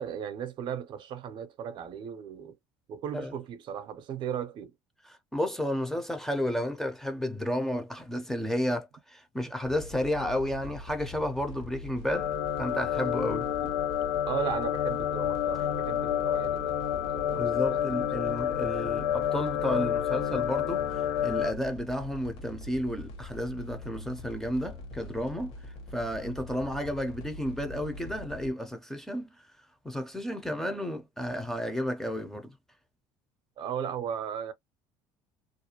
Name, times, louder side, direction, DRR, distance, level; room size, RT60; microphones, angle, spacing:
voice 1, 0.0-2.5 2.9-4.7 13.6-13.7 14.3-18.3 33.6-34.5, right 8 dB, 50° right, 0.5 m, -36 dB
voice 2, 5.1-13.5 17.3-25.5 25.9-29.3 29.8-32.6, left 1 dB, 5° left, 0.5 m, -32 dB
sound 1, 9.6-28.5, left 2 dB, 65° left, 1.1 m, -43 dB
sound 2, 12.1-21.5, left 10 dB, 90° left, 0.5 m, -29 dB
2.4 x 2.1 x 2.8 m
cardioid pair, 130°, 10 cm